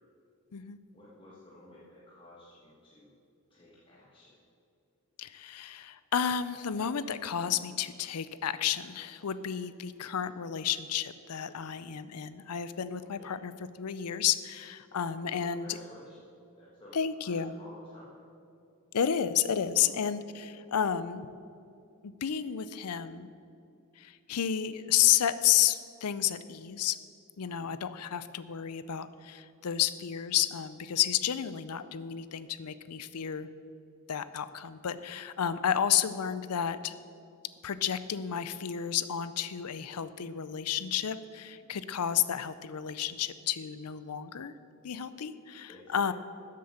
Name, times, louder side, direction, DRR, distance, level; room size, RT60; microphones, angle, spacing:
voice 1, 0.9-3.1 3.5-4.4 13.2-13.3 14.9-16.2 16.6-16.9 17.2-18.1 19.9-20.0 27.6-27.7 41.6-41.7 45.7-46.1, left 1 dB, 25° left, -8 dB, 1.6 m, -53 dB
voice 2, 5.2-13.5 13.8-15.8 16.9-17.5 18.9-21.3 22.0-23.3 24.0-27.0 27.4-33.5 34.1-36.9 37.6-44.5 44.8-46.1, left 9 dB, 90° left, 14 dB, 0.5 m, -31 dB
13.0 x 7.7 x 6.6 m, 2.6 s
head